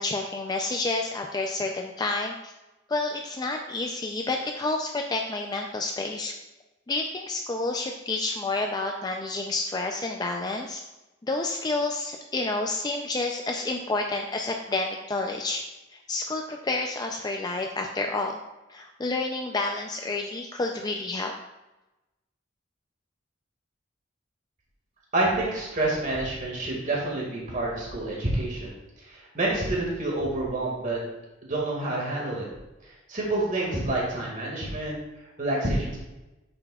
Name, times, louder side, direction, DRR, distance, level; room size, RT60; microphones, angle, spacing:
voice 1, 0.0-2.5 2.9-6.4 6.9-10.8 11.2-15.7 15.9-18.4 18.7-21.3, left 2 dB, 20° left, 2 dB, 0.4 m, -29 dB
voice 2, 25.1-28.7 29.1-31.0 31.4-32.5 32.8-35.0 35.4-36.0, right 2 dB, 40° right, -4 dB, 1.9 m, -28 dB
8.9 x 6.9 x 2.3 m, 1.0 s
head